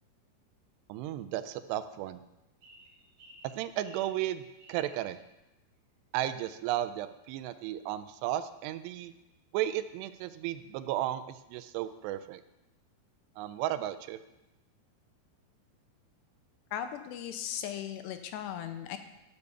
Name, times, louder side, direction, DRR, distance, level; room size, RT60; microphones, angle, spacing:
voice 1, 0.9-2.2 3.6-4.4 4.7-5.2 6.1-9.1 9.5-12.4 13.4-14.2, right 13 dB, 80° right, 11 dB, 2.6 m, -34 dB
sound 1, 2.6-4.9, right 1 dB, 50° right, 3.4 m, -55 dB
voice 2, 16.7-19.0, left 10 dB, 80° left, 8 dB, 2.8 m, -37 dB
12.5 x 6.8 x 6.8 m, 0.94 s
omnidirectional pair, 5.0 m